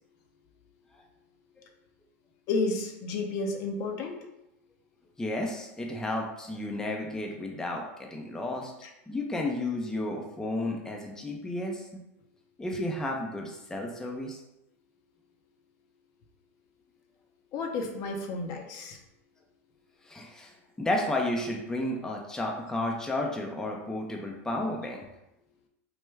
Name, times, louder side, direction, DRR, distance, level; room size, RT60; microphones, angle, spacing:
voice 1, 2.5-4.2 8.8-8.9 17.5-19.0, left 3 dB, 50° left, 3 dB, 0.6 m, -31 dB
voice 2, 5.2-7.8 8.1-8.7 9.1-11.9 12.6-14.4 20.1-25.0, left 1 dB, 5° left, 0 dB, 0.4 m, -32 dB
3.2 x 2.2 x 3.3 m, 0.89 s
hypercardioid pair, 110°, 8 cm